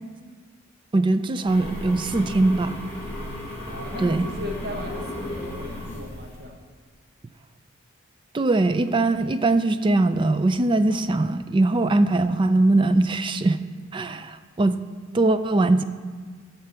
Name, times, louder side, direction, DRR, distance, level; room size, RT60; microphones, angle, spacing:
voice 1, 0.9-2.8 4.0-4.3 8.3-13.6 13.9-14.8 15.1-15.8, right 2 dB, 25° right, 11 dB, 0.3 m, -21 dB
sound 1, 1.5-6.5, left 1 dB, 10° left, 2.4 m, -34 dB
voice 2, 3.6-6.5, left 1 dB, 50° right, 2 dB, 1.1 m, -37 dB
12.5 x 4.6 x 6.5 m, 1.5 s
head